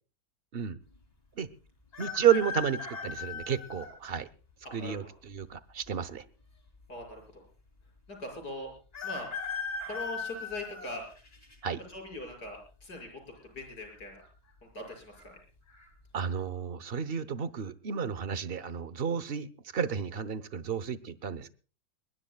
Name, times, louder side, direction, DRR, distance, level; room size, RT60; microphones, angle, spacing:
sound 1, 1.9-4.0 4.6-4.7 5.8-6.4 6.7-6.8 7.0-7.1 8.9-11.6 12.1-12.5 13.6-14.0 14.2-14.3 14.9-15.2 15.7-15.9, left 5 dB, 25° left, 2.8 m, -38 dB
voice 1, 2.0-4.3 4.7-6.2 11.6-11.8 16.1-21.5, right 8 dB, 45° right, 16 dB, 0.9 m, -31 dB
voice 2, 6.9-7.5 8.1-8.7 9.0-9.3 9.8-11.1 11.9-14.2 14.7-15.3, left 1 dB, 80° left, 2 dB, 7.0 m, -41 dB
22.5 x 21.0 x 2.3 m, 0.36 s
omnidirectional pair, 1.7 m